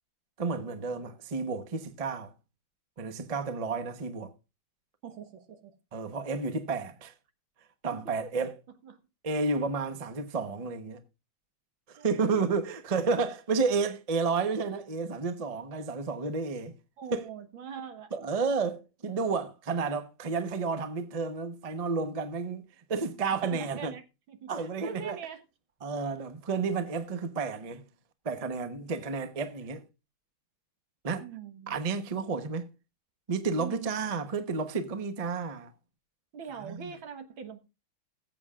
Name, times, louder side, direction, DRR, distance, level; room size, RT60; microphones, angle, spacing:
voice 1, 0.4-2.3 3.0-4.3 5.9-7.1 7.8-8.5 9.2-11.0 11.9-16.7 17.1-17.3 18.1-22.6 22.9-23.9 24.5-25.2 25.8-27.8 28.2-29.8 31.0-31.3 31.7-32.7 33.3-35.7 36.6-36.8, right 4 dB, 30° right, 0.7 m, -31 dB
voice 2, 5.0-5.7 7.9-8.5 8.8-9.0 12.0-12.6 17.0-18.1 23.5-24.0 24.3-25.4 31.2-31.8 33.6-33.9 36.3-37.6, right 7 dB, 75° right, 2.2 m, -43 dB
20.0 x 7.9 x 2.4 m
omnidirectional pair, 2.2 m